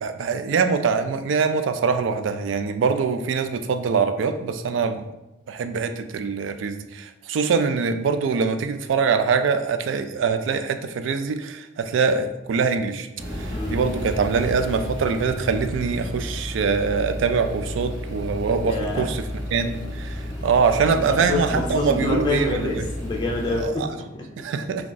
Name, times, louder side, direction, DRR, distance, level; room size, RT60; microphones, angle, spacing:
voice 1, 0.0-5.0 5.5-13.1 13.4-19.2 19.5-22.9 23.6-23.9 24.4-24.9, right 5 dB, 90° right, 9 dB, 0.3 m, -23 dB
sound 1, 13.2-23.6, left 1 dB, 75° right, 1.0 m, -32 dB
voice 2, 13.5-13.8 18.7-19.1 20.3-20.5 20.8-24.3, left 2 dB, 25° left, -1 dB, 0.4 m, -27 dB
3.5 x 2.3 x 3.9 m, 0.98 s
head